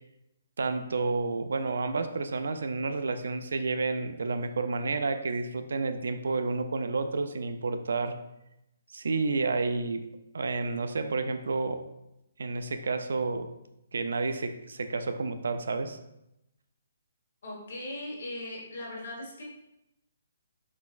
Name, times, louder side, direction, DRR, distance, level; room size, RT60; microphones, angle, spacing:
voice 1, 0.6-8.2 8.9-10.1 10.3-11.8 12.4-13.5 13.9-16.0, right 3 dB, 75° right, 9 dB, 0.3 m, -30 dB
voice 2, 17.4-19.4, left 1 dB, 50° left, -2 dB, 1.2 m, -39 dB
4.0 x 3.9 x 2.4 m, 0.86 s
hypercardioid pair, 180°, 0 cm